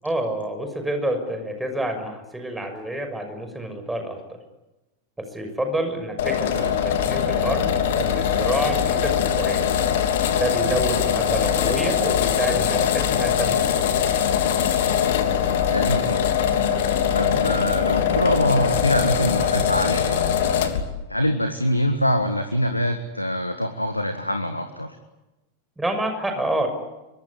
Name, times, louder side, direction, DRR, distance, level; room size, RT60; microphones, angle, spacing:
voice 1, 0.0-4.4 5.2-9.7 10.3-13.7 25.8-26.7, right 1 dB, 5° right, 6 dB, 6.2 m, -28 dB
sound 1, 6.2-20.8, left 8 dB, 55° left, 3.1 m, -22 dB
voice 2, 15.7-16.3 17.1-20.3 21.1-25.0, equal, 85° left, 8 dB, 1.8 m, -24 dB
24.5 x 23.0 x 9.8 m, 1.0 s
figure-of-eight pair, 90°, 0 cm